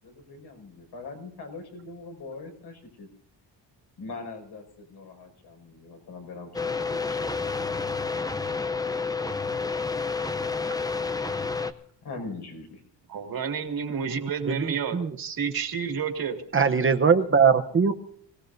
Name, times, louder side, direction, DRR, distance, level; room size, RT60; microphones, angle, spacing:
voice 1, 0.0-3.1 4.0-7.3 11.5-11.7 12.0-12.8, left 3 dB, 65° left, 3 dB, 5.6 m, -42 dB
sound 1, 6.5-11.7, left 4 dB, 10° left, 0.6 m, -29 dB
voice 2, 13.1-16.4, right 6 dB, 55° right, 5 dB, 2.3 m, -30 dB
voice 3, 14.5-15.2 16.5-17.9, right 6 dB, 30° right, 6 dB, 0.9 m, -21 dB
25.5 x 17.5 x 2.7 m, 0.63 s
cardioid pair, 155°, 43 cm